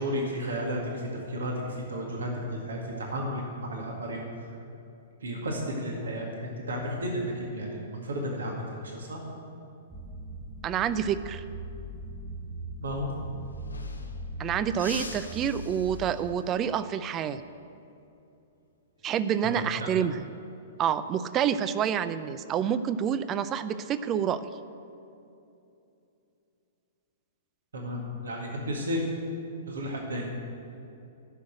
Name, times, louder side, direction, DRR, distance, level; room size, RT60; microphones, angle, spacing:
voice 1, 0.0-4.2 5.2-9.2 12.8-13.1 19.4-19.9 27.7-29.0 29.7-30.3, equal, 75° right, 0 dB, 2.0 m, -33 dB
sound 1, 9.9-16.1, right 1 dB, 5° right, 1.4 m, -40 dB
voice 2, 10.6-11.4 14.4-17.4 19.0-20.2 20.8-24.5, right 8 dB, 30° right, 14 dB, 0.5 m, -28 dB
sound 2, 13.1-13.2 13.4-14.3 14.7-16.5 19.0-19.3 20.7-21.2, left 3 dB, 85° left, 1.0 m, -44 dB
11.5 x 6.3 x 8.9 m, 2.7 s
figure-of-eight pair, 110°, 0 cm